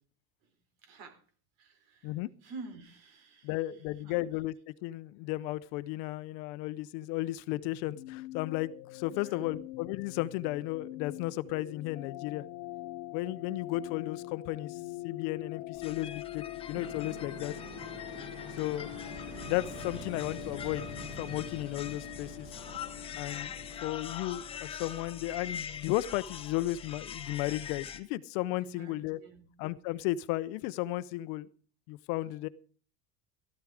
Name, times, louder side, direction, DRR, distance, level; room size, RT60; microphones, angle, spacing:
voice 1, 0.8-1.2 1.6-4.2 9.1-9.6 15.9-16.2 28.6-29.5, right 3 dB, 65° right, 7 dB, 4.1 m, -50 dB
voice 2, 3.4-4.5 4.8-12.4 13.1-17.5 18.6-18.9 19.4-20.8 21.2-22.5 23.1-23.5 23.8-29.2 29.6-31.5 31.9-32.5, left 17 dB, 50° left, 16 dB, 0.6 m, -34 dB
sound 1, 7.5-27.0, left 17 dB, 85° left, 1.0 m, -44 dB
sound 2, 15.8-28.0, left 8 dB, 15° left, 0.8 m, -44 dB
sound 3, 16.7-23.8, right 3 dB, 25° right, 1.4 m, -47 dB
13.5 x 13.0 x 4.8 m, 0.41 s
cardioid pair, 180°, 32 cm